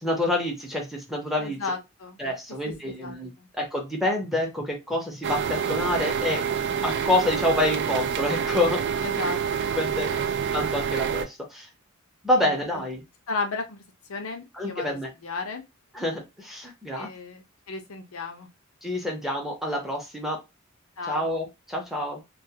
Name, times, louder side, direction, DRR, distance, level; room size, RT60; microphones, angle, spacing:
voice 1, 0.0-1.6 2.2-6.4 6.8-8.8 9.8-10.1 10.5-11.7 12.2-13.0 14.5-15.1 15.9-17.1 18.8-20.4 21.1-22.2, left 1 dB, ahead, 0.7 m, -27 dB
voice 2, 1.4-2.2 2.8-3.5 9.0-9.7 10.0-10.3 12.3-12.8 13.3-13.8 14.1-15.0 15.2-15.6 17.0-18.5 21.0-21.3, left 3 dB, 75° left, 0.6 m, -34 dB
sound 1, 5.2-11.3, right 7 dB, 55° right, 0.3 m, -27 dB
2.4 x 2.3 x 2.8 m
head